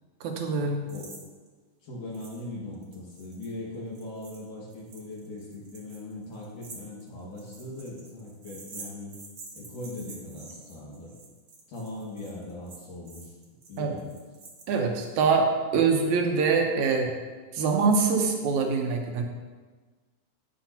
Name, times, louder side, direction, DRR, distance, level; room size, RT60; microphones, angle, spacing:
voice 1, 0.2-0.8 13.8-13.9 14.7-15.5 15.7-17.1 17.5-19.2, right 5 dB, 65° right, 2 dB, 2.3 m, -24 dB
sound 1, 0.9-1.2 1.5-1.6 2.1-2.4 2.7-15.1, right 3 dB, 50° right, 1.5 m, -48 dB
voice 2, 1.8-9.1 9.5-11.2 11.7-13.4 13.7-14.2, left 2 dB, 70° left, -6 dB, 3.5 m, -40 dB
11.5 x 10.0 x 3.0 m, 1.4 s
omnidirectional pair, 3.8 m